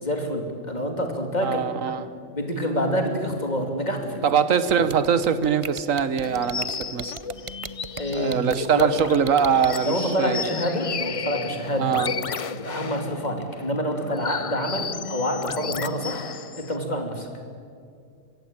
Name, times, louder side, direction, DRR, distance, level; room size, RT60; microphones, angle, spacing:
voice 1, 0.0-1.7 2.3-4.3 8.0-8.4 8.7-8.9 9.8-11.9 12.5-16.3 16.6-17.3, equal, 35° left, 3 dB, 3.0 m, -27 dB
voice 2, 1.4-2.1 2.5-2.6 4.2-7.1 8.1-10.4 11.8-12.1, right 7 dB, 80° right, 13 dB, 1.5 m, -23 dB
sound 1, 4.7-9.7, right 6 dB, 40° right, 0.4 m, -36 dB
sound 2, 6.2-16.8, left 6 dB, 50° left, 0.4 m, -34 dB
25.0 x 15.5 x 9.0 m, 2.3 s
omnidirectional pair, 1.4 m